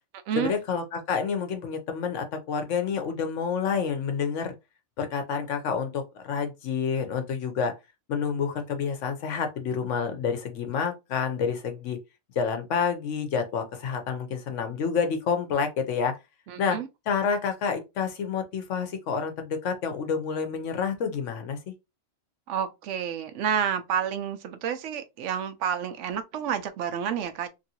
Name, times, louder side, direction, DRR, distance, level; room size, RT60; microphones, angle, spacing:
voice 1, 0.4-4.6 5.0-7.7 8.1-12.0 12.4-16.2 16.6-16.8 17.1-21.7, left 6 dB, 85° left, 1.1 m, -28 dB
voice 2, 16.5-16.9 22.5-27.5, right 8 dB, 85° right, 0.9 m, -29 dB
3.0 x 2.7 x 2.8 m
omnidirectional pair, 1.2 m